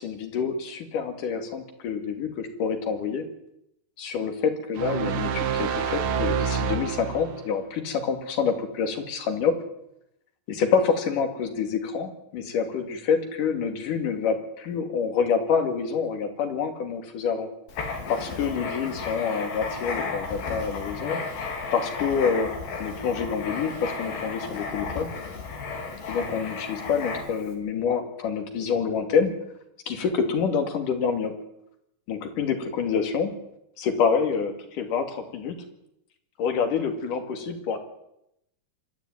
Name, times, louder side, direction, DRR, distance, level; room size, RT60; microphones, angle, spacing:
voice 1, 0.0-3.2 4.0-9.6 10.5-17.5 18.1-21.2 21.7-22.5 22.8-25.1 26.1-29.3 29.9-31.3 32.1-33.3 33.8-35.6 36.4-37.8, left 6 dB, 65° left, 7 dB, 3.9 m, -27 dB
sound 1, 4.8-7.5, right 7 dB, 65° right, 2.5 m, -27 dB
Writing, 17.7-27.5, left 4 dB, 85° left, 4.9 m, -33 dB
25.5 x 13.0 x 9.2 m, 0.81 s
omnidirectional pair, 4.2 m